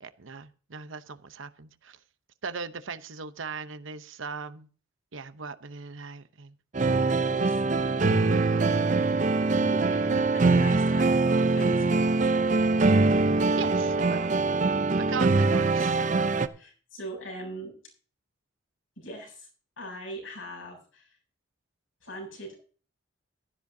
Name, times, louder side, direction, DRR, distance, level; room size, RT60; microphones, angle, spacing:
voice 1, 0.0-2.0 2.4-4.7 5.1-6.5 13.6-14.3 15.0-16.1, right 5 dB, 70° right, 11 dB, 0.8 m, -38 dB
sound 1, 6.7-16.5, right 3 dB, 35° right, 0.5 m, -23 dB
voice 2, 6.8-7.6 9.6-12.7 16.5-17.8 19.0-19.5 19.8-21.2 22.0-22.6, right 1 dB, 75° left, 1 dB, 7.3 m, -42 dB
15.5 x 13.5 x 2.8 m, 0.40 s
head